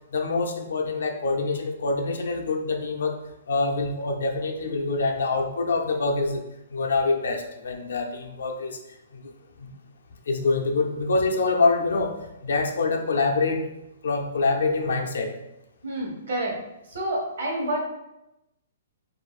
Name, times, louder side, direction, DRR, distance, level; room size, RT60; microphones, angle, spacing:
voice 1, 0.1-3.2 3.5-6.4 6.7-8.8 9.1-9.3 9.6-9.7 10.3-12.2 12.4-13.7 14.0-15.3, left 3 dB, 80° left, 4 dB, 0.5 m, -25 dB
voice 2, 15.8-16.6 16.9-17.8, right 1 dB, 75° right, -2 dB, 1.2 m, -28 dB
2.5 x 2.4 x 4.0 m, 0.90 s
hypercardioid pair, 135°, 0 cm